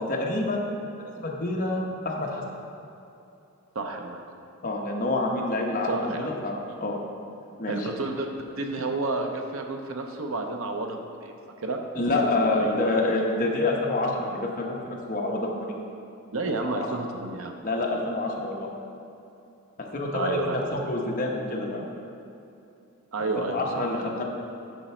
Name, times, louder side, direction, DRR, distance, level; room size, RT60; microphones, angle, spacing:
voice 1, 0.1-0.8 1.0-2.4 4.6-7.0 7.6-7.9 11.9-15.8 16.7-16.9 17.6-18.7 19.9-21.8 23.5-24.2, left 2 dB, 40° left, -1 dB, 1.0 m, -27 dB
voice 2, 3.7-4.2 5.9-6.3 7.7-11.8 12.3-12.8 16.3-17.5 20.1-20.6 23.1-24.2, right 2 dB, 70° right, 3 dB, 0.8 m, -31 dB
9.1 x 6.0 x 4.4 m, 2.8 s
head